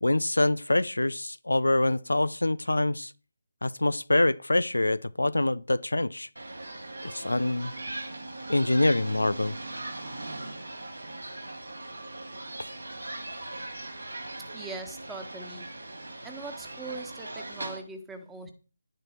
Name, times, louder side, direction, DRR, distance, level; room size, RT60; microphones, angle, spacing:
voice 1, 0.0-3.1 3.6-6.3 7.0-7.7 8.5-9.6, left 2 dB, 80° left, 0.6 m, -25 dB
sound 1, 6.4-17.8, right 2 dB, 80° right, 4.5 m, -39 dB
voice 2, 14.5-15.7 16.2-18.5, right 3 dB, 5° right, 1.4 m, -41 dB
11.0 x 10.5 x 4.5 m
figure-of-eight pair, 155°, 0 cm